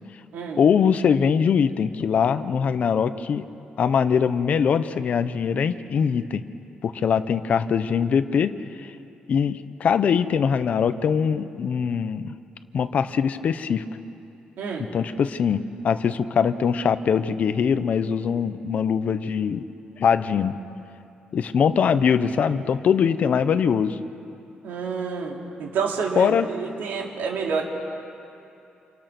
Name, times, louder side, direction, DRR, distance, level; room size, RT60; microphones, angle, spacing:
voice 1, 0.6-3.5 3.8-6.5 6.8-8.9 9.3-12.3 12.7-13.8 14.8-19.7 20.0-20.6 21.3-24.0 26.2-26.5, left 7 dB, 50° left, 11 dB, 0.9 m, -22 dB
voice 2, 14.6-14.9 24.6-27.7, right 5 dB, 85° right, 0 dB, 3.6 m, -28 dB
29.0 x 28.0 x 6.2 m, 2.7 s
wide cardioid pair, 170°, 3 cm